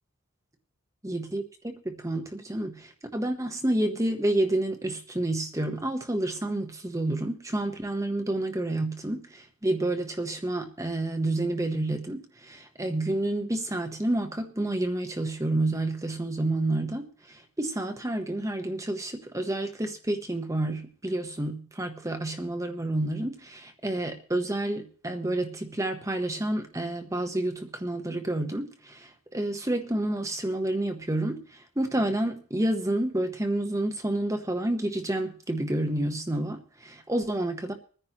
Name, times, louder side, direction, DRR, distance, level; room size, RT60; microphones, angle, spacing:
voice 1, 1.0-37.7, right 1 dB, 15° right, 5 dB, 1.0 m, -29 dB
24.0 x 10.0 x 3.0 m, 0.42 s
head